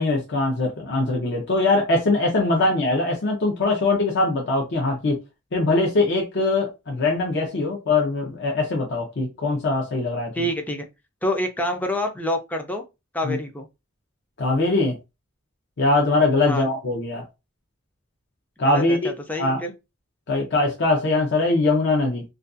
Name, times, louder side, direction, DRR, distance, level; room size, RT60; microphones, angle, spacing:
voice 1, 0.0-5.2 5.5-10.3 13.2-13.4 14.4-15.0 15.8-17.2 18.6-19.1 19.4-19.6 20.3-22.2, left 2 dB, 55° left, 0.6 m, -22 dB
voice 2, 10.3-10.9 11.2-12.8 13.1-13.7 16.4-16.7 18.6-19.7, equal, 10° left, 0.4 m, -27 dB
2.4 x 2.3 x 2.5 m
head